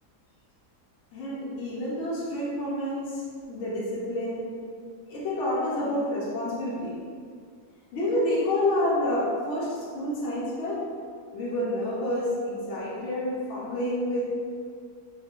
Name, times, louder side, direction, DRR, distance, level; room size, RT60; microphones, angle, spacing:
voice 1, 1.1-3.2 3.5-4.6 5.1-7.0 7.9-10.9 11.3-14.3, left 1 dB, 65° left, -7 dB, 0.8 m, -28 dB
2.8 x 2.1 x 2.9 m, 2.1 s
omnidirectional pair, 1.7 m